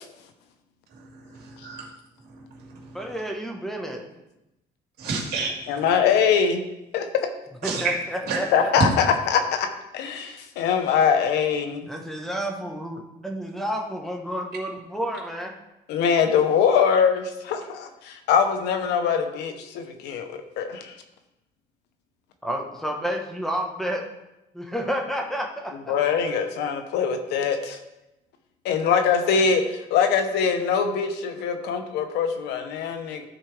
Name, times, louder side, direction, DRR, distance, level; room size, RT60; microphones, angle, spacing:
voice 1, 1.3-1.9 2.3-3.0 5.0-5.5 7.6-8.0 8.3-8.4, right 5 dB, 70° right, -1 dB, 2.5 m, -30 dB
voice 2, 2.9-4.0 7.6-8.7 11.9-15.5 22.4-24.0 24.5-25.9, equal, ahead, 1 dB, 1.3 m, -30 dB
voice 3, 5.7-6.6 6.9-7.3 8.5-9.7 9.9-11.9 15.9-20.3 20.6-20.9 25.9-27.8 28.6-33.3, left 7 dB, 90° left, 7 dB, 1.0 m, -23 dB
13.0 x 4.4 x 3.5 m, 0.91 s
cardioid pair, 110°, 17 cm